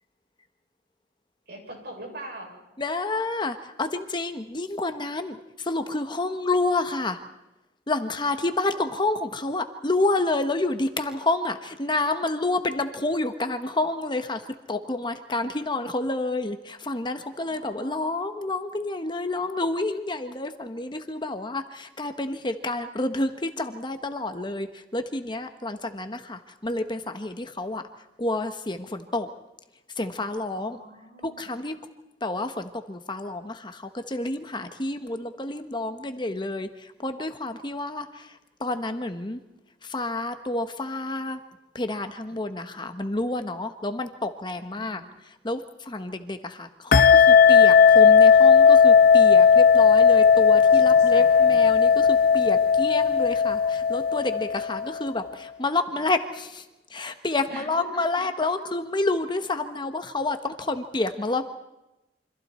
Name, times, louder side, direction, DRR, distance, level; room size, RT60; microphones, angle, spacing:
voice 1, 1.5-2.6 8.2-8.8 17.4-18.0 30.5-31.5 44.8-45.1 50.6-51.6 57.5-58.0 58.6-58.7, right 1 dB, 60° right, 1 dB, 6.8 m, -43 dB
voice 2, 2.8-7.2 7.9-27.9 28.2-29.3 30.0-30.8 31.2-31.8 32.2-39.4 39.8-41.4 41.7-56.6 56.9-61.5, left 2 dB, 25° left, 8 dB, 1.2 m, -29 dB
sound 1, 46.9-55.0, left 6 dB, 55° left, 0.7 m, -16 dB
27.5 x 25.5 x 4.4 m, 0.96 s
head